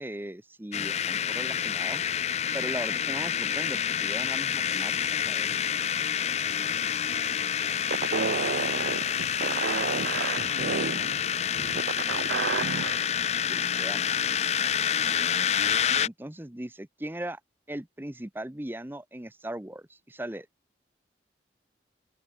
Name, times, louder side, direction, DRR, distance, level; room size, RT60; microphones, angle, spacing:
voice 1, 0.0-2.0 2.5-4.9 5.2-5.6 13.5-14.8 16.0-17.4 17.7-20.5, right 1 dB, 10° right, 0.7 m, -39 dB
sound 1, 0.7-16.1, left 9 dB, 35° left, 0.5 m, -28 dB
voice 2, 6.4-7.9 8.3-8.9 10.5-12.7, left 1 dB, 80° left, 4.5 m, -50 dB
sound 2, 7.9-13.0, right 5 dB, 70° right, 0.5 m, -31 dB
open air
head